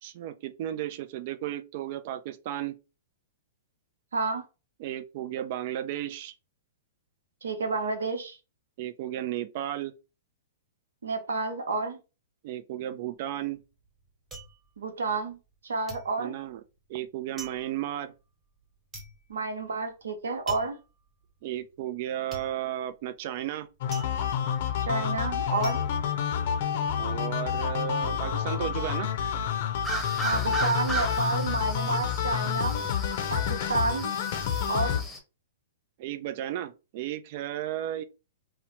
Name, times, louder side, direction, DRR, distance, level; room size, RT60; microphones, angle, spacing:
voice 1, 0.0-2.7 4.8-6.3 8.8-9.9 12.4-13.6 16.2-16.6 16.9-18.1 21.4-23.7 27.0-29.1 36.0-38.0, right 12 dB, 50° right, 0.3 m, -34 dB
voice 2, 4.1-4.4 7.4-8.4 11.0-12.0 14.8-15.4 15.6-16.3 19.3-20.8 24.8-25.8 30.2-32.8 33.3-34.1 34.7-35.0, right 3 dB, 80° right, 0.8 m, -30 dB
sound 1, 13.2-15.6 15.9-27.0 27.3-27.9, right 2 dB, 20° right, 1.2 m, -47 dB
sound 2, 23.8-35.0, left 8 dB, 60° left, 0.6 m, -29 dB
sound 3, 29.8-35.2, right 1 dB, 5° left, 0.8 m, -36 dB
2.9 x 2.0 x 3.0 m
hypercardioid pair, 120°, 0 cm